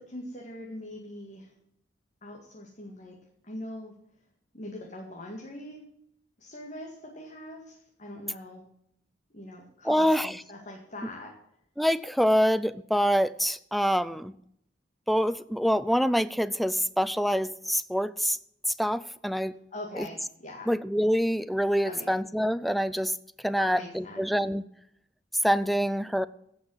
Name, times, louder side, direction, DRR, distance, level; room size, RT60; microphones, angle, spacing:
voice 1, 0.0-1.5 2.2-3.2 3.4-3.9 4.5-5.8 6.4-8.7 9.3-11.3 19.7-20.7 21.8-22.1 23.6-24.3, left 1 dB, 40° left, -1 dB, 2.1 m, -42 dB
voice 2, 9.8-10.3 11.8-14.3 15.1-18.4 18.8-19.5 20.0-20.1 20.7-23.2 23.4-24.6 25.4-26.3, equal, ahead, 16 dB, 0.4 m, -26 dB
16.0 x 6.0 x 7.9 m, 0.73 s
head